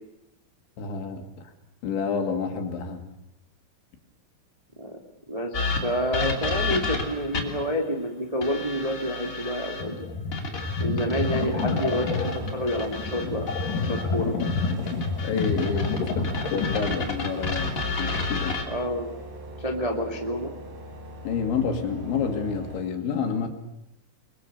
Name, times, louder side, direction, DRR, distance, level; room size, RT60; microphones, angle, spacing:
voice 1, 0.8-1.3 1.8-3.0 15.2-18.7 21.2-23.5, left 5 dB, 70° left, 5 dB, 4.6 m, -29 dB
voice 2, 5.3-10.0 10.8-13.5 13.9-14.3 18.7-19.1 19.6-20.5, equal, 15° right, 2 dB, 1.1 m, -28 dB
sound 1, 5.5-7.7 8.4-9.8 10.3-14.0 14.4-18.6, left 3 dB, 20° left, 2.5 m, -31 dB
sound 2, 9.8-16.9, left 4 dB, 50° left, 3.7 m, -29 dB
sound 3, 11.2-22.8, right 1 dB, 75° right, 8.3 m, -42 dB
29.5 x 22.5 x 6.9 m, 0.83 s
omnidirectional pair, 5.5 m